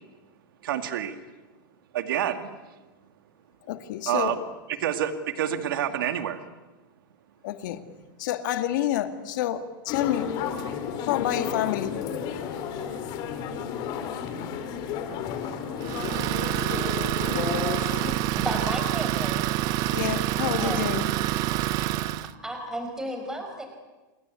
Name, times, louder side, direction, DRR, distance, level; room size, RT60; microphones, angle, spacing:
voice 1, 0.6-1.2 1.9-2.5 4.1-4.4 4.8-6.4, right 10 dB, 75° right, 8 dB, 2.3 m, -27 dB
voice 2, 3.7-4.4 7.4-7.8 8.2-10.3 11.1-12.0 19.9-21.1, left 12 dB, 60° left, 9 dB, 2.3 m, -28 dB
sound 1, 9.9-18.1, left 7 dB, 40° left, 3.5 m, -32 dB
Idling, 15.8-22.3, right 15 dB, 35° right, 0.8 m, -27 dB
voice 3, 18.3-19.4 20.4-20.8 22.2-23.6, right 1 dB, 5° right, 4 dB, 5.3 m, -33 dB
28.5 x 22.0 x 8.5 m, 1.2 s
supercardioid pair, 160°, 12 cm